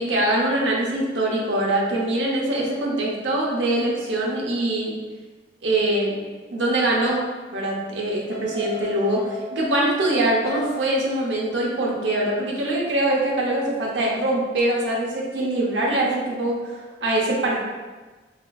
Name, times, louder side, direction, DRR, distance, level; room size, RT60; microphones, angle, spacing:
voice 1, 0.0-5.0 5.6-7.2 7.5-17.7, right 1 dB, 90° right, -3 dB, 0.8 m, -23 dB
sound 1, 7.0-7.4 8.3-9.7 10.0-10.9, left 1 dB, 85° left, 1.1 m, -35 dB
4.9 x 2.6 x 2.3 m, 1.3 s
head